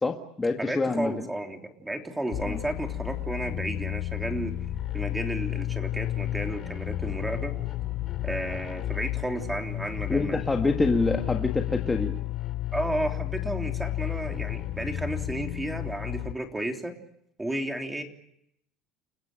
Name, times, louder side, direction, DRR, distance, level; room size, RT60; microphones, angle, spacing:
voice 1, 0.0-1.3 2.4-2.6 10.1-12.1, left 3 dB, 15° left, 3 dB, 1.7 m, -26 dB
voice 2, 0.6-4.5 4.9-7.5 8.2-10.4 12.7-17.0 17.4-18.0, right 1 dB, 5° right, 4 dB, 3.3 m, -33 dB
sound 1, 2.3-16.3, left 14 dB, 45° left, 2.5 m, -32 dB
30.0 x 16.0 x 9.1 m, 0.74 s
cardioid pair, 135°, 0 cm